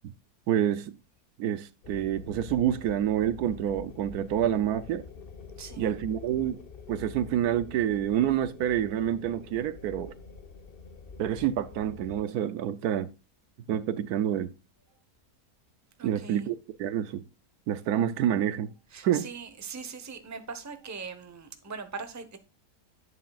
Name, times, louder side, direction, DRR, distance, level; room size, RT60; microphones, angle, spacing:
voice 1, 0.5-1.0 1.4-5.1 5.8-6.6 6.9-10.1 11.2-13.1 13.7-14.5 16.0-17.2 17.7-18.7 19.0-19.3, right 10 dB, 75° right, 1.1 m, -28 dB
sound 1, 1.8-12.2, left 5 dB, 45° left, 0.9 m, -46 dB
voice 2, 5.6-5.9 16.0-16.5 18.9-22.4, right 5 dB, 15° right, 0.8 m, -41 dB
11.0 x 8.6 x 2.4 m
omnidirectional pair, 1.7 m